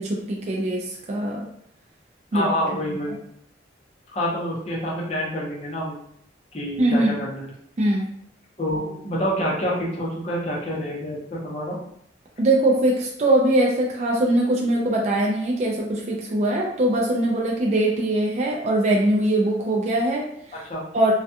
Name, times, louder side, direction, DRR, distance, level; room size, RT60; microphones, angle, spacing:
voice 1, 0.0-1.5 2.3-3.0 6.8-7.1 7.8-8.1 12.4-20.6 20.9-21.1, right 1 dB, 35° right, -2 dB, 0.3 m, -22 dB
voice 2, 2.3-3.1 4.1-6.0 6.5-7.5 8.6-11.8 20.7-20.8, equal, 35° left, -4 dB, 0.7 m, -27 dB
2.3 x 2.2 x 2.7 m, 0.70 s
head